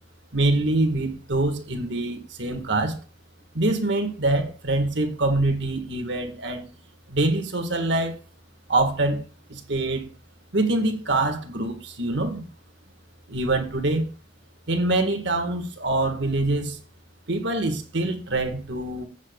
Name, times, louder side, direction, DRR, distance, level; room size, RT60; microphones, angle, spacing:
voice 1, 0.3-3.0 3.5-6.7 7.1-8.1 8.7-9.2 9.5-10.1 10.5-12.4 13.3-14.1 14.7-16.8 17.3-19.1, right 2 dB, 70° right, 1.9 m, -24 dB
15.0 x 7.3 x 2.4 m
head